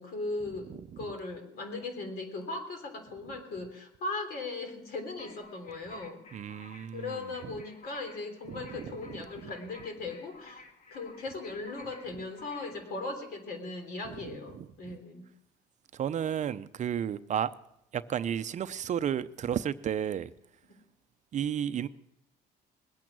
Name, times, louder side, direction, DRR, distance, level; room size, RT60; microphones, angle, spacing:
voice 1, 0.0-6.2 6.9-10.6 10.9-15.3, left 3 dB, 65° left, 3.4 m, -38 dB
sound 1, 5.2-12.9, left 3 dB, 45° left, 1.7 m, -53 dB
voice 2, 6.3-7.2 7.4-7.5 8.5-8.9 14.5-14.7 15.9-17.5 17.9-20.3 21.3-21.9, right 9 dB, 45° right, 0.6 m, -32 dB
21.0 x 9.0 x 6.1 m
cardioid pair, 110°, 17 cm